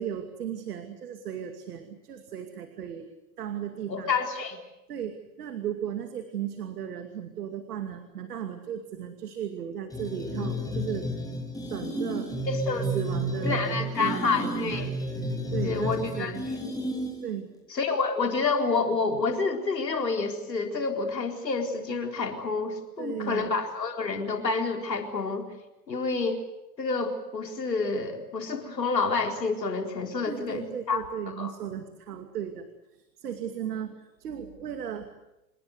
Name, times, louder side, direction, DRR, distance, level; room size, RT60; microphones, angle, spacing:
voice 1, 0.0-3.1 3.4-4.1 4.9-11.1 11.7-12.3 12.9-14.9 15.2-16.4 17.2-17.5 23.0-23.6 30.3-35.1, right 9 dB, 65° right, 7 dB, 2.5 m, -36 dB
voice 2, 3.9-4.6 12.5-12.8 13.4-14.9 15.6-16.3 17.7-25.5 25.9-26.4 26.8-31.0 31.4-31.5, left 4 dB, 80° left, 3 dB, 4.3 m, -28 dB
sound 1, 9.9-17.4, equal, 5° left, 6.2 m, -32 dB
27.0 x 21.5 x 8.1 m, 0.96 s
figure-of-eight pair, 105°, 49 cm